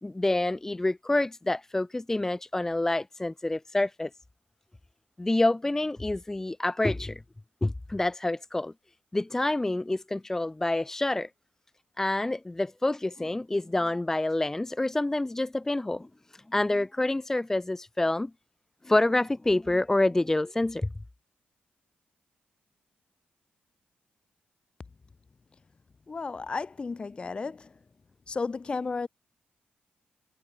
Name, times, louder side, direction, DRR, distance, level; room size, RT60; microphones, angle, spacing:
voice 1, 0.0-4.1 5.2-7.2 7.6-8.7 9.1-11.3 12.0-18.3 18.8-20.9, left 2 dB, 15° left, 0.9 m, -27 dB
voice 2, 26.1-27.8 28.3-29.1, left 4 dB, 30° left, 2.1 m, -33 dB
cardioid pair, 115°, 3 cm